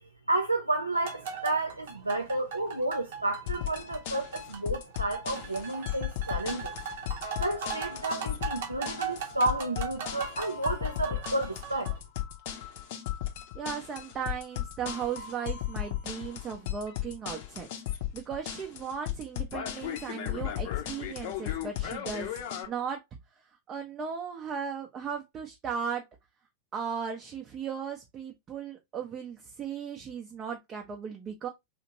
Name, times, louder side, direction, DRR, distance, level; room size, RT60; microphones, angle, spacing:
voice 1, 0.3-6.7 7.4-11.9, right 2 dB, 85° right, 0.4 m, -31 dB
sound 1, 0.9-12.0, right 6 dB, 55° right, 0.8 m, -39 dB
sound 2, 3.5-22.7, left 12 dB, 50° left, 0.6 m, -36 dB
voice 2, 13.5-17.7 18.1-22.4 22.6-23.0 23.7-26.0 26.7-31.5, right 7 dB, 25° right, 0.5 m, -36 dB
2.8 x 2.5 x 2.8 m
figure-of-eight pair, 90°, 0 cm